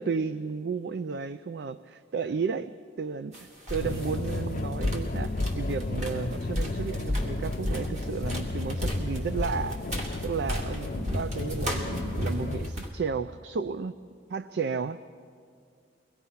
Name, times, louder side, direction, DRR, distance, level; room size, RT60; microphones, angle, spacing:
voice 1, 0.0-9.8 10.2-13.9 14.3-15.1, right 5 dB, 65° right, 12 dB, 0.4 m, -33 dB
sound 1, 3.3-3.4 3.7-12.9, left 1 dB, 40° right, 2.7 m, -32 dB
sound 2, 3.8-12.7, left 3 dB, 45° left, 0.5 m, -34 dB
23.5 x 20.0 x 5.7 m, 2.3 s
head